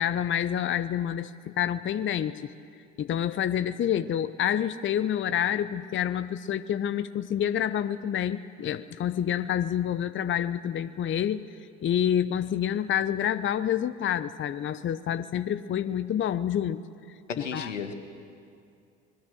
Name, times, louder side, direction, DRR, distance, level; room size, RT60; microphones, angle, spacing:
voice 1, 0.0-2.5 3.0-11.4 11.8-16.8 17.4-17.7, left 10 dB, 35° left, 15 dB, 0.8 m, -28 dB
voice 2, 17.3-17.9, left 6 dB, 85° left, 8 dB, 1.6 m, -34 dB
29.0 x 21.0 x 6.6 m, 2.4 s
figure-of-eight pair, 55°, 36 cm